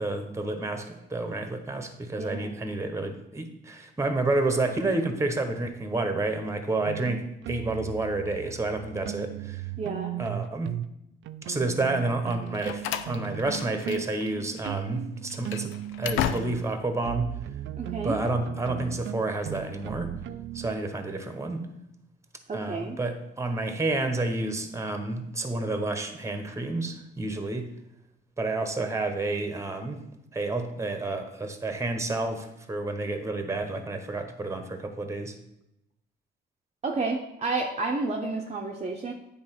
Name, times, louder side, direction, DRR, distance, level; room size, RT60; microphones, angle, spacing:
voice 1, 0.0-9.6 10.2-10.7 11.4-15.7 16.0-17.3 18.0-20.1 20.5-21.7 22.5-27.7 28.4-30.0 30.3-35.3, right 2 dB, 15° right, 7 dB, 1.1 m, -30 dB
voice 2, 2.2-2.5 9.8-10.1 17.8-18.2 22.5-23.0 36.8-39.1, right 3 dB, 35° right, 1 dB, 0.8 m, -30 dB
sound 1, 6.9-10.9 11.3-20.8, right 13 dB, 70° right, 0.4 m, -37 dB
Slam, 12.3-14.3 14.6-14.7 15.2-16.8, left 10 dB, 85° left, 0.5 m, -34 dB
8.7 x 3.7 x 5.9 m, 0.83 s
cardioid pair, 90°, 20 cm